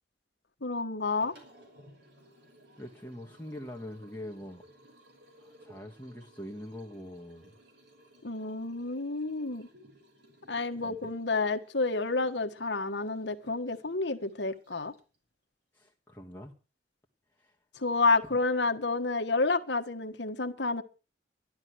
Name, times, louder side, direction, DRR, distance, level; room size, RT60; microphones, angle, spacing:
voice 1, 0.6-1.3 8.2-9.7 10.5-14.9 17.7-20.8, left 3 dB, 70° left, 6 dB, 1.5 m, -29 dB
Liquid, 1.1-15.2, right 1 dB, 65° right, 6.1 m, -59 dB
voice 2, 2.8-4.6 5.4-7.5 10.8-11.0 15.7-16.5 17.4-17.5 18.2-18.4, left 1 dB, 10° left, -1 dB, 1.7 m, -43 dB
13.5 x 12.0 x 6.3 m, 0.34 s
head